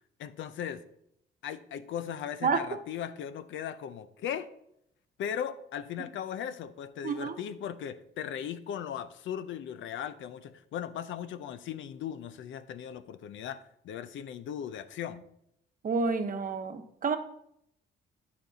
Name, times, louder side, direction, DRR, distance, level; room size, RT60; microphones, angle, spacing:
voice 1, 0.2-0.8 1.4-4.5 5.2-15.3, left 9 dB, 75° left, 14 dB, 0.6 m, -38 dB
voice 2, 7.0-7.4 15.8-17.2, right 5 dB, 45° right, 7 dB, 1.0 m, -29 dB
11.5 x 5.2 x 4.0 m, 0.75 s
cardioid pair, 90°, 20 cm